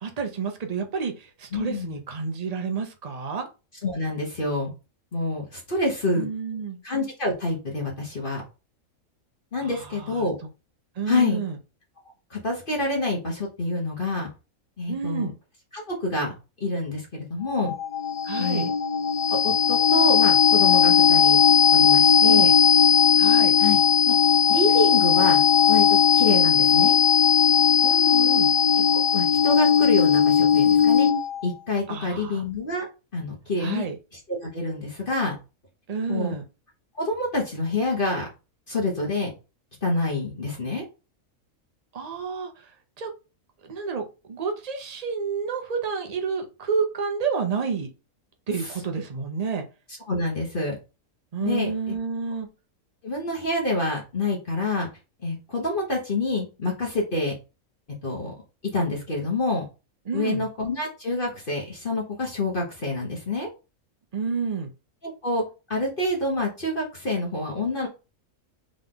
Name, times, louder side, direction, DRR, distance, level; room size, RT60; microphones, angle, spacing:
voice 1, 0.0-3.5 6.1-6.8 9.6-10.3 11.0-11.6 14.9-15.3 18.2-18.7 22.2-22.5 23.2-23.6 27.8-28.5 31.9-32.4 33.6-34.0 35.9-36.4 41.9-42.7 43.0-43.1 43.6-47.9 48.5-49.6 51.3-52.5 60.1-60.5 64.1-64.7, right 5 dB, 30° right, 4 dB, 0.8 m, -30 dB
voice 2, 1.5-2.0 3.8-4.7 5.1-6.3 6.8-8.4 9.5-10.3 11.1-11.4 12.3-14.3 14.8-15.3 15.7-16.3 16.6-17.7 18.4-18.7 19.3-21.4 21.7-22.5 23.6-23.8 24.0-24.2 24.5-27.0 29.1-31.1 31.4-32.9 33.1-33.8 34.3-35.4 36.1-36.3 36.9-38.3 38.7-39.3 39.8-40.8 50.1-50.8 51.4-51.7 53.0-54.9 55.2-57.3 58.0-58.3 58.7-59.7 60.1-63.5 65.2-65.4 65.7-67.9, left 2 dB, 40° left, -1 dB, 1.4 m, -27 dB
sound 1, 17.5-31.4, left 7 dB, 60° left, 1.3 m, -18 dB
3.9 x 3.7 x 3.7 m, 0.30 s
omnidirectional pair, 1.5 m